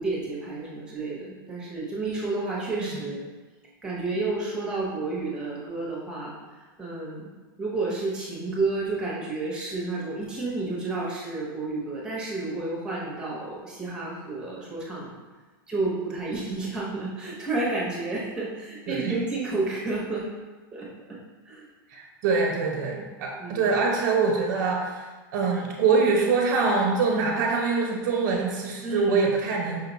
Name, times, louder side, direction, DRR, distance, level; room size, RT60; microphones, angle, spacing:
voice 1, 0.0-3.3 3.8-6.3 6.8-7.3 7.6-15.1 15.7-20.3 20.7-21.2 21.5-21.7 23.4-23.7 28.8-29.3, right 3 dB, 5° right, -5 dB, 0.8 m, -31 dB
voice 2, 21.9-25.1 25.3-29.8, right 4 dB, 40° right, -1 dB, 0.6 m, -24 dB
5.3 x 2.2 x 3.9 m, 1.3 s
supercardioid pair, 165°, 12 cm